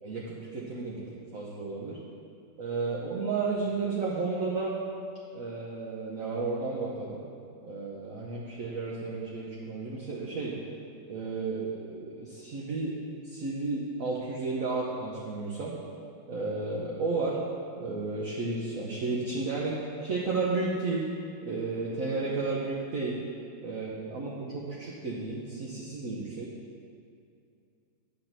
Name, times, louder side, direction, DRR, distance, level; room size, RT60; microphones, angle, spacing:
voice 1, 0.0-1.0 1.3-2.0 2.6-4.7 5.3-7.2 7.6-10.6 11.1-12.9 13.2-15.7 16.3-17.4 17.8-21.1 21.4-23.2 23.6-26.5, right 3 dB, 50° right, -4 dB, 1.2 m, -32 dB
9.7 x 4.1 x 7.3 m, 2.5 s
omnidirectional pair, 2.1 m